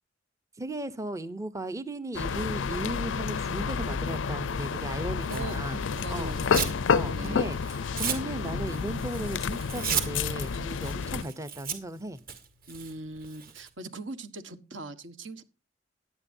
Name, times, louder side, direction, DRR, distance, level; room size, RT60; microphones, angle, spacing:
voice 1, 0.6-5.8 6.1-6.3 6.9-12.2, right 1 dB, 15° right, 0.6 m, -36 dB
sound 1, 2.1-11.2, left 5 dB, 85° left, 0.5 m, -30 dB
Tearing, 5.2-6.8 7.2-13.7, right 7 dB, 50° right, 2.2 m, -35 dB
voice 2, 5.3-7.6 11.0-11.2 12.7-15.4, right 2 dB, 75° right, 1.4 m, -41 dB
17.0 x 10.5 x 2.6 m
head